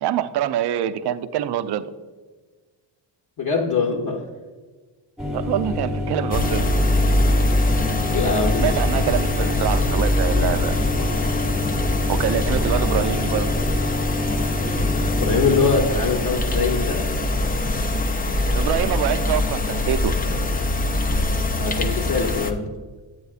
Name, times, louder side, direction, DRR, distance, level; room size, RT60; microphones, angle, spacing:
voice 1, 0.0-1.9 5.3-6.7 8.6-11.1 12.1-13.6 18.5-20.2, right 11 dB, 55° right, 12 dB, 0.5 m, -25 dB
voice 2, 3.4-4.3 7.6-8.7 15.1-17.1 20.8-21.0 21.6-22.7, left 4 dB, 45° left, 0 dB, 0.9 m, -23 dB
sound 1, 5.2-15.8, left 2 dB, ahead, 1.0 m, -27 dB
sound 2, 6.3-22.5, left 2 dB, 20° left, 0.4 m, -23 dB
8.9 x 7.9 x 2.4 m, 1.3 s
cardioid pair, 90°, 48 cm